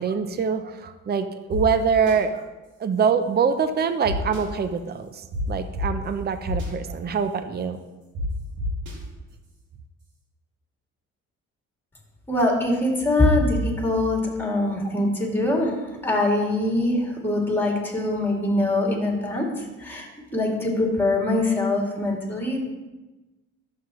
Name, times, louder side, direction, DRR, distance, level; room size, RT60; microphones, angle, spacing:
voice 1, 0.0-2.4 2.8-7.8, right 6 dB, 35° right, 10 dB, 0.6 m, -24 dB
sound 1, 1.5-1.6 2.1-2.2 4.0-4.4 5.3-5.4 5.7-5.8 6.4-6.7 8.1-8.2 8.6-8.9, left 2 dB, 85° right, 2.5 m, -29 dB
voice 2, 12.3-20.1 20.3-22.6, left 2 dB, 5° left, -1 dB, 2.6 m, -23 dB
11.5 x 7.6 x 3.1 m, 1.1 s
cardioid pair, 90°, 30 cm